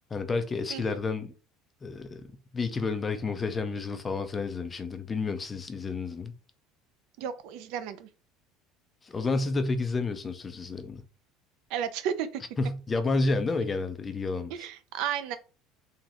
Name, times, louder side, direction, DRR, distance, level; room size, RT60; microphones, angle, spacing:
voice 1, 0.1-1.3 1.8-2.3 2.5-6.3 9.0-11.0 12.6-14.7, left 3 dB, 15° left, 0.4 m, -30 dB
voice 2, 7.2-8.1 11.7-12.4 14.5-15.4, right 9 dB, 60° right, 0.5 m, -33 dB
3.8 x 3.1 x 2.9 m
cardioid pair, 175°, 0 cm